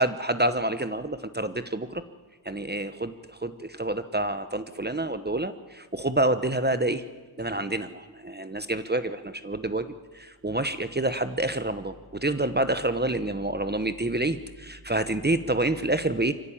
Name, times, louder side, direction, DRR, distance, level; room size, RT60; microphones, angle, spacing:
voice 1, 0.0-2.0 2.4-7.1 7.4-16.3, right 2 dB, 20° right, 11 dB, 1.0 m, -28 dB
24.0 x 16.0 x 8.7 m, 1.3 s
wide cardioid pair, 70°, 50 cm